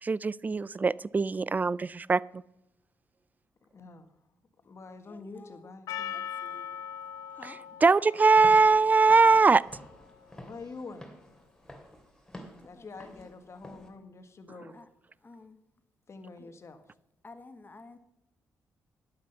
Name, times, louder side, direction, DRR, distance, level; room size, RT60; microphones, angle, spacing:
voice 1, 0.0-2.4 7.4-9.6, right 4 dB, 25° right, 0.3 m, -22 dB
voice 2, 3.6-4.1 4.6-6.2 7.7-7.8 10.4-11.0 12.6-14.8 16.1-16.8, left 3 dB, 50° left, 1.6 m, -46 dB
voice 3, 5.1-5.5 6.4-6.7 7.4-7.6 12.7-12.8 14.8-14.9 15.2-15.6 17.2-18.0, left 3 dB, 30° left, 1.0 m, -50 dB
Percussion, 5.9-10.4, left 9 dB, 85° left, 0.8 m, -41 dB
Walk footsteps / Siren, 8.3-13.9, left 1 dB, 10° left, 2.5 m, -49 dB
11.5 x 8.7 x 5.5 m
cardioid pair, 60°, 6 cm